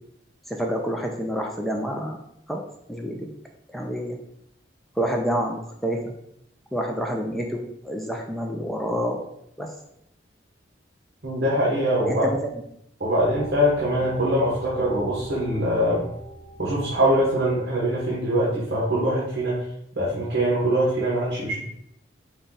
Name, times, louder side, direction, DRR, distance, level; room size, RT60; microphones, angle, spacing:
voice 1, 0.5-2.2 2.5-2.6 2.9-3.3 3.7-4.2 5.0-6.1 6.7-9.3 9.6-9.7 12.0-12.4, equal, ahead, 1 dB, 0.4 m, -28 dB
voice 2, 11.2-12.2 13.0-16.0 16.6-19.6 20.0-21.6, equal, 65° right, -6 dB, 1.2 m, -23 dB
sound 1, 13.1-18.2, right 1 dB, 15° right, 0.8 m, -41 dB
5.2 x 2.3 x 3.9 m, 0.74 s
head